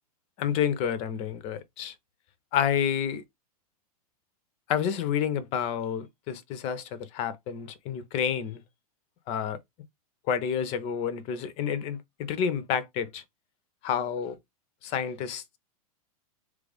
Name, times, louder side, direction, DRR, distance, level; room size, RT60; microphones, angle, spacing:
voice 1, 0.4-1.9 2.5-3.2 4.7-8.6 9.3-9.6 10.3-13.2 13.8-14.4 14.8-15.6, left 8 dB, 30° left, 0.6 m, -29 dB
3.1 x 2.5 x 3.4 m
figure-of-eight pair, 100°, 19 cm